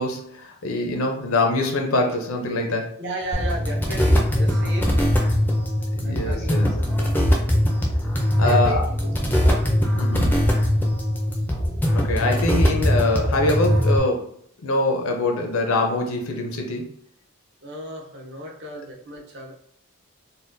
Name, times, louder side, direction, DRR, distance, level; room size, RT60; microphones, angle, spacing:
voice 1, 0.0-2.9 6.0-6.7 8.4-8.8 9.9-10.4 11.9-14.3 14.6-17.0, left 2 dB, 70° left, 2 dB, 0.6 m, -24 dB
voice 2, 3.0-5.3 6.0-7.4 8.4-9.7 17.6-19.5, right 1 dB, 50° right, -2 dB, 0.8 m, -35 dB
sound 1, 3.3-14.0, equal, 10° left, 0.4 m, -21 dB
4.1 x 2.2 x 2.6 m, 0.67 s
head